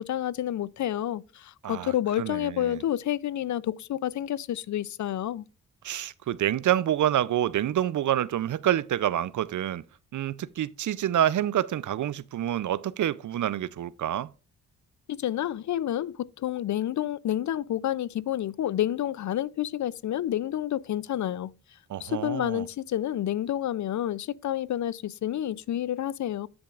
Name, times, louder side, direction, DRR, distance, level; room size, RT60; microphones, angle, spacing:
voice 1, 0.0-5.4 15.1-21.5 22.0-26.5, left 11 dB, 55° left, 0.5 m, -29 dB
voice 2, 1.6-2.8 5.8-9.8 10.1-14.3 21.9-22.6, right 11 dB, 60° right, 0.6 m, -27 dB
10.5 x 6.9 x 2.4 m
cardioid pair, 60°, 34 cm